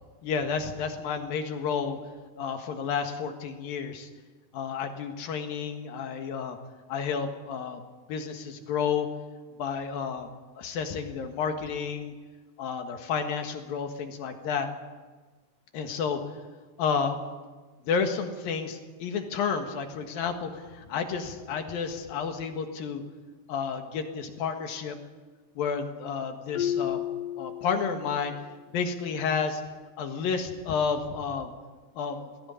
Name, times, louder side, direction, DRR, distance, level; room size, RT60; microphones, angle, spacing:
voice 1, 0.2-2.0 2.4-4.1 4.5-6.6 6.9-7.8 8.1-9.1 9.6-10.3 10.6-12.1 12.6-14.7 15.7-16.2 16.8-17.2 17.9-23.0 23.5-25.0 25.6-27.0 27.4-28.3 28.7-29.6 30.0-31.5 32.0-32.3, left 6 dB, 65° left, 5 dB, 3.2 m, -31 dB
Marimba xylophone, 26.5-28.3, left 10 dB, 80° left, 1.9 m, -32 dB
19.5 x 16.5 x 9.9 m, 1.3 s
omnidirectional pair, 4.9 m